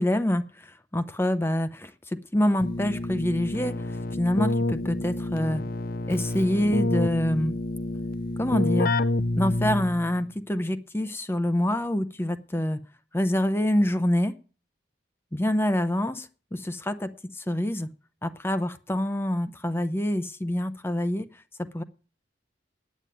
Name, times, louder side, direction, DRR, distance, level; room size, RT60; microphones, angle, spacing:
voice 1, 0.0-5.6 6.1-7.6 8.4-8.9 9.4-12.8 13.1-14.3 15.3-17.9 18.2-21.3 21.7-21.8, left 1 dB, 15° left, 11 dB, 0.6 m, -26 dB
Keyboard (musical), 2.6-10.2, left 2 dB, 50° left, 0.6 m, -28 dB
9.3 x 8.9 x 9.2 m, 0.38 s
head